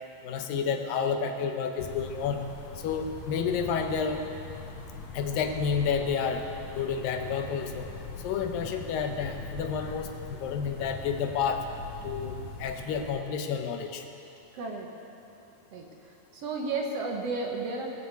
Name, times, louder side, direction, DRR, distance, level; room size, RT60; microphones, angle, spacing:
voice 1, 0.2-2.4 2.8-4.2 5.1-6.5 6.7-7.9 8.2-11.7 12.0-14.0, left 6 dB, 80° left, 5 dB, 2.7 m, -30 dB
sound 1, 1.8-13.1, left 3 dB, 65° left, 2.5 m, -42 dB
voice 2, 14.5-14.9 15.7-17.9, right 3 dB, 60° right, 1 dB, 1.9 m, -33 dB
21.0 x 7.3 x 8.2 m, 2.7 s
omnidirectional pair, 4.0 m